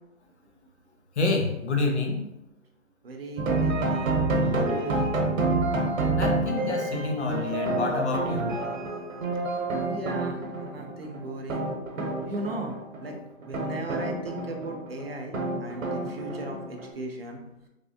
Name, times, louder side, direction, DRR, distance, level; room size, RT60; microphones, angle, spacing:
voice 1, 1.2-2.3 6.1-8.5, left 3 dB, 60° left, 2 dB, 0.8 m, -27 dB
voice 2, 3.0-5.1 9.9-11.7 12.2-17.4, right 1 dB, 50° right, 2 dB, 0.6 m, -37 dB
sound 1, 3.4-16.9, right 2 dB, 85° right, 0.9 m, -28 dB
3.4 x 3.1 x 2.6 m, 0.91 s
hypercardioid pair, 175°, 39 cm